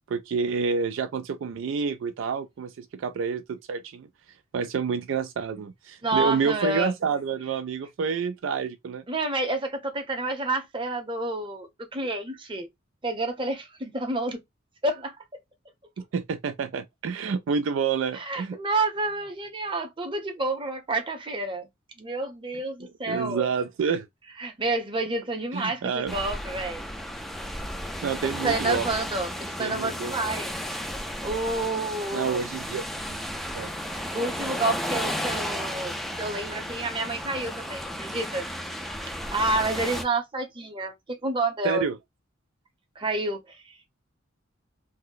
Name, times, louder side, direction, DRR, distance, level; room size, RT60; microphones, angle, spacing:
voice 1, 0.1-4.1 4.5-9.0 16.1-18.6 22.8-24.1 25.5-26.1 28.0-28.9 29.6-30.2 32.1-32.8 33.1-33.2 33.5-33.7 41.6-42.0, right 5 dB, 70° right, 0.3 m, -28 dB
voice 2, 6.0-6.9 9.1-12.7 13.0-14.4 14.8-15.2 18.1-21.7 22.0-23.5 24.4-26.8 28.2-30.6 31.2-32.4 34.1-38.5 39.3-41.8 43.0-43.9, right 2 dB, 25° right, 0.7 m, -29 dB
sound 1, 26.1-40.0, equal, ahead, 0.4 m, -33 dB
2.7 x 2.1 x 3.7 m
head